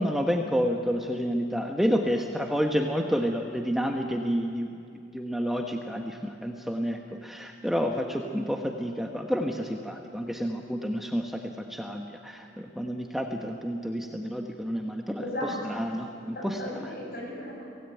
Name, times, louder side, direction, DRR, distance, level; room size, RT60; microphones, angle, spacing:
voice 1, 0.0-4.7 5.1-11.4 11.7-15.2 15.7-16.6, equal, ahead, 2 dB, 1.0 m, -29 dB
voice 2, 15.2-15.8 16.2-17.6, left 1 dB, 50° left, -1 dB, 7.2 m, -36 dB
23.5 x 17.0 x 9.0 m, 2.4 s
head